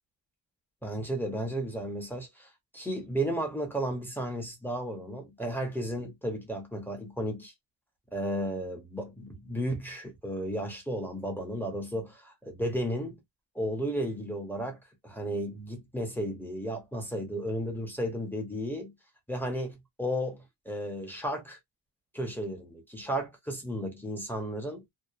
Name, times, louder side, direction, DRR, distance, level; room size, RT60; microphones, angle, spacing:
voice 1, 0.8-7.5 8.1-13.2 13.5-14.8 15.0-18.9 19.3-21.6 22.1-24.8, equal, 5° left, 0.7 m, -34 dB
2.8 x 2.1 x 2.3 m
wide cardioid pair, 150°, 43 cm